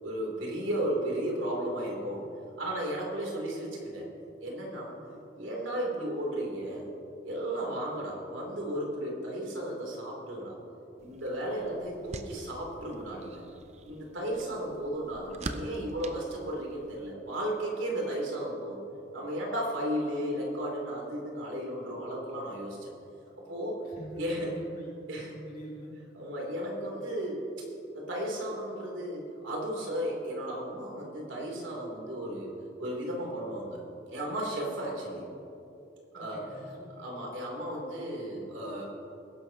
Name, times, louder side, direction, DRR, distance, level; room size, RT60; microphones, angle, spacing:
voice 1, 0.0-2.2 2.6-4.0 4.4-4.9 5.4-6.9 7.2-10.6 11.0-13.4 13.8-18.8 19.1-22.9 23.4-23.8 24.2-24.5 25.1-25.3 26.1-27.4 27.9-32.5 32.8-33.8 34.1-35.2 36.1-36.4 37.0-38.8, right 1 dB, 90° right, -2 dB, 3.2 m, -34 dB
sound 1, 11.0-17.1, right 2 dB, 35° right, 0.6 m, -45 dB
voice 2, 23.8-24.9 25.3-25.9 36.1-37.1, equal, 50° left, -4 dB, 2.9 m, -46 dB
20.5 x 11.0 x 2.9 m, 2.9 s
head